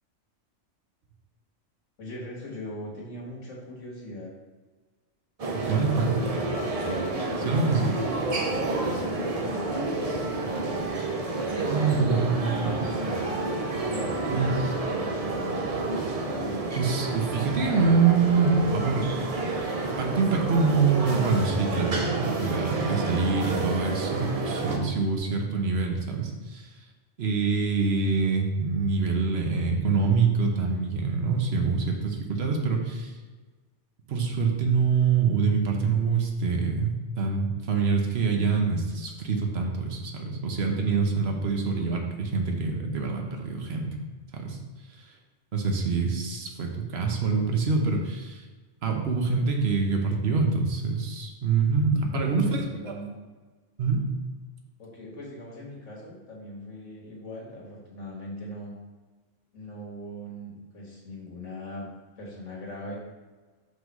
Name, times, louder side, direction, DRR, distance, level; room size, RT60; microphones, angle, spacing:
voice 1, 2.0-4.3 5.5-6.5 7.4-10.8 11.4-13.4 13.8-15.6 52.1-53.2 54.8-58.7 59.5-61.9 62.2-63.0, equal, 80° left, -3 dB, 1.9 m, -40 dB
sound 1, 5.4-24.8, right 2 dB, 40° right, 0.6 m, -29 dB
voice 2, 5.5-6.1 7.4-7.9 11.7-12.9 14.3-14.5 16.7-19.1 19.8-26.7 27.2-33.1 34.1-44.0 44.3-44.6 45.0-45.1 45.5-48.4 48.8-52.6 52.9-53.0 53.8-54.1, right 4 dB, 60° right, 2 dB, 1.1 m, -25 dB
5.5 x 3.9 x 5.2 m, 1.3 s
omnidirectional pair, 1.3 m